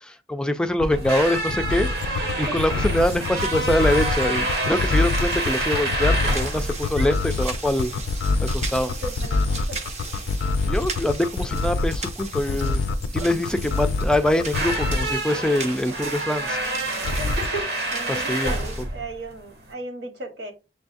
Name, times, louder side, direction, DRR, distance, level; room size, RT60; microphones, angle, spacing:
voice 1, 0.0-7.9 8.4-9.0 10.6-12.8 13.1-16.6 18.1-18.5, left 1 dB, 5° left, 0.3 m, -24 dB
sound 1, 0.8-15.2 17.0-17.6, left 3 dB, 85° left, 0.4 m, -25 dB
sound 2, 0.8-19.7, right 1 dB, 65° right, 0.9 m, -29 dB
sound 3, 2.7-18.9, right 4 dB, 40° right, 0.6 m, -38 dB
voice 2, 8.9-9.8 13.1-13.3 17.2-17.6 17.9-20.5, right 2 dB, 85° right, 1.2 m, -35 dB
6.7 x 2.3 x 2.5 m
head